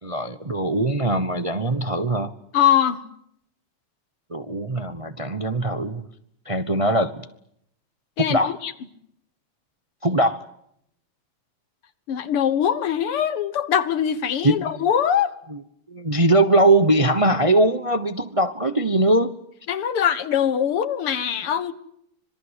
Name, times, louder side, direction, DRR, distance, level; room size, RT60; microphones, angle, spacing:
voice 1, 0.0-2.3 4.3-6.1 6.4-7.3 8.2-8.6 10.0-10.4 14.4-14.9 15.5-15.6 15.9-19.3, right 1 dB, 30° right, 11 dB, 0.6 m, -21 dB
voice 2, 2.5-3.0 8.2-8.7 12.1-15.3 19.7-21.7, left 9 dB, 85° left, 13 dB, 2.4 m, -22 dB
26.0 x 22.0 x 8.3 m, 0.73 s
omnidirectional pair, 2.4 m